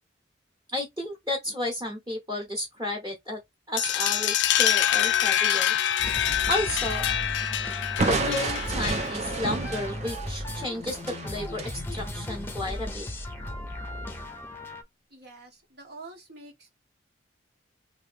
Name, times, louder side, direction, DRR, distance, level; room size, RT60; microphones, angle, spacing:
voice 1, 0.7-3.4 3.7-5.7 6.5-7.0 8.0-13.1, left 1 dB, 20° right, 1.1 m, -32 dB
sound 1, 3.8-9.3, left 10 dB, 65° left, 0.4 m, -25 dB
sound 2, 6.0-14.8, left 1 dB, 10° left, 0.7 m, -36 dB
Crushing, 8.0-11.8, right 3 dB, 35° right, 0.6 m, -30 dB
voice 2, 15.1-16.7, right 3 dB, 55° right, 1.1 m, -46 dB
3.1 x 2.7 x 3.3 m
head